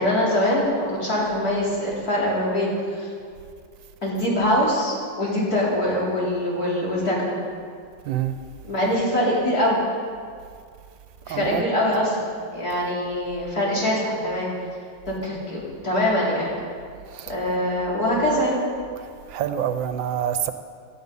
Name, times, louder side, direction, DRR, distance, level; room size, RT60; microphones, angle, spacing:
voice 1, 0.0-3.1 4.0-7.4 8.6-9.8 11.3-14.5 15.1-16.6 17.3-18.6, left 1 dB, 50° left, -5 dB, 4.7 m, -23 dB
voice 2, 8.1-8.4 11.3-11.6 17.1-17.3 19.3-20.5, right 9 dB, 80° right, 9 dB, 1.5 m, -26 dB
18.0 x 13.5 x 5.6 m, 2.2 s
omnidirectional pair, 2.1 m